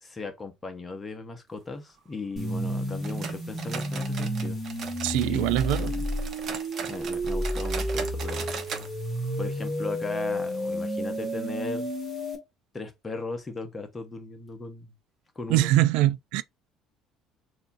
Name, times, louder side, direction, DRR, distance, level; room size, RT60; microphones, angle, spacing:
voice 1, 0.0-4.6 5.3-5.6 6.8-8.5 9.4-11.9 12.7-14.9 15.3-15.8, left 3 dB, 15° left, 1.0 m, -37 dB
sound 1, 2.4-12.4, equal, ahead, 1.8 m, -31 dB
sound 2, 3.0-5.3 5.6-8.9 9.2-9.3 9.6-9.7 10.3-10.4, right 6 dB, 35° right, 0.9 m, -38 dB
voice 2, 5.0-6.0 15.5-16.4, right 14 dB, 85° right, 0.4 m, -23 dB
6.6 x 2.8 x 2.6 m
cardioid pair, 165°, 0 cm